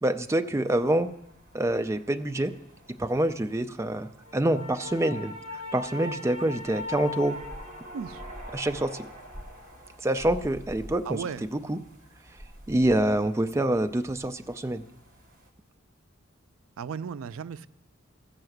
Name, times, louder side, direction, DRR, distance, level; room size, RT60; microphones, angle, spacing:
voice 1, 0.0-1.1 1.5-2.5 3.0-5.4 5.7-7.4 8.5-9.1 10.0-11.2 11.5-11.8 12.7-14.8, right 1 dB, 15° right, 8 dB, 0.4 m, -26 dB
sound 1, 0.6-15.5, left 2 dB, 45° right, 1.5 m, -43 dB
voice 2, 11.1-11.4 16.8-17.7, right 6 dB, 85° right, 15 dB, 0.4 m, -35 dB
14.0 x 5.8 x 7.8 m, 0.83 s
head